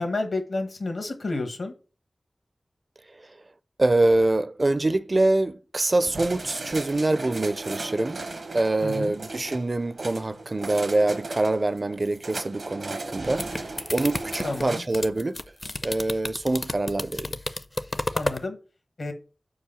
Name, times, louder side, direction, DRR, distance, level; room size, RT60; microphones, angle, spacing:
voice 1, 0.0-1.7 8.8-9.2 14.4-14.8 18.1-18.6 19.0-19.1, left 2 dB, 75° left, 1.4 m, -30 dB
voice 2, 3.8-8.2 8.5-15.4 15.8-17.4, right 2 dB, 40° right, 0.4 m, -25 dB
sound 1, 6.0-14.8, right 3 dB, 75° right, 0.9 m, -36 dB
sound 2, 13.0-18.4, left 2 dB, 35° left, 0.5 m, -32 dB
5.2 x 4.8 x 5.7 m
wide cardioid pair, 85°, 0 cm